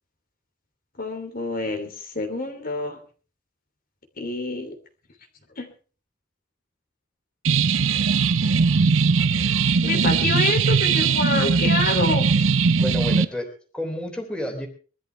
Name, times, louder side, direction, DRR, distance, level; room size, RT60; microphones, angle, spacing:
voice 1, 1.0-3.0 4.2-4.7 5.6-5.7 9.8-12.3, left 3 dB, 50° left, 4 dB, 3.1 m, -27 dB
sound 1, 7.4-13.2, right 5 dB, 85° right, 0.8 m, -20 dB
voice 2, 9.0-9.6 12.8-14.7, equal, 5° left, 2 dB, 3.4 m, -31 dB
23.0 x 13.0 x 3.4 m, 0.38 s
head